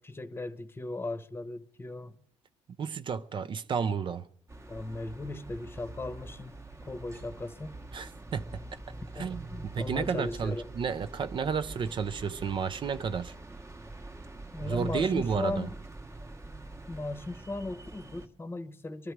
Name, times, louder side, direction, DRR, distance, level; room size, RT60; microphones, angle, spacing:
voice 1, 0.0-2.2 4.7-7.8 9.1-10.7 14.5-15.7 16.9-19.1, left 2 dB, 20° left, 1.0 m, -37 dB
voice 2, 2.8-4.3 7.9-8.6 9.2-13.3 14.6-15.7, right 6 dB, 45° right, 0.6 m, -32 dB
sound 1, 4.5-18.3, right 2 dB, 20° right, 1.1 m, -45 dB
23.0 x 12.5 x 4.7 m
cardioid pair, 110°, 12 cm